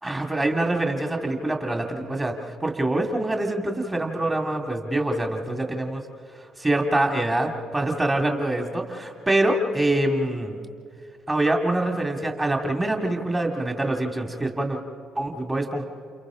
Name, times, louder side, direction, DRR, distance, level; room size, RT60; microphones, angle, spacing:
voice 1, 0.0-6.0 6.6-10.6 11.3-14.8 15.2-15.9, right 1 dB, 20° right, 3 dB, 2.3 m, -25 dB
29.0 x 28.5 x 3.9 m, 2.4 s
figure-of-eight pair, 45°, 0 cm